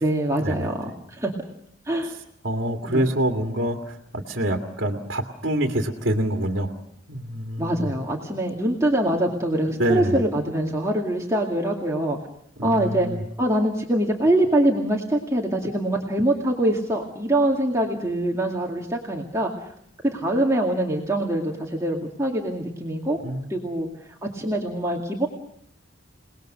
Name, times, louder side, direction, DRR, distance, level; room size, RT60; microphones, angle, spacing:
voice 1, 0.0-1.3 1.9-2.2 2.8-3.1 7.6-12.2 12.6-13.1 13.4-19.7 20.0-23.2 23.5-25.3, right 1 dB, 15° right, -1 dB, 2.2 m, -24 dB
voice 2, 2.4-6.8 7.1-7.9 9.8-10.2 12.6-13.2 23.2-23.5, right 1 dB, 60° right, 3 dB, 2.2 m, -26 dB
28.5 x 19.5 x 6.6 m, 0.67 s
head